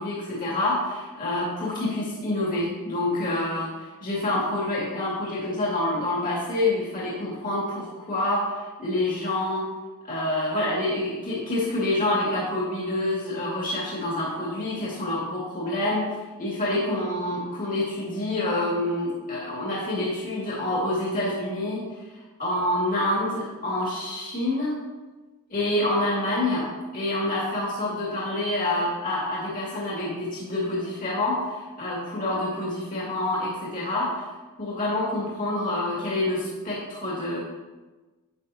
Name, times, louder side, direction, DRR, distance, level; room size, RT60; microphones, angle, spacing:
voice 1, 0.0-9.6 10.0-16.0 16.4-21.8 22.4-24.7 25.5-26.7 26.9-34.3 34.6-37.4, left 1 dB, 40° left, -6 dB, 2.2 m, -27 dB
10.5 x 8.3 x 2.8 m, 1.2 s
head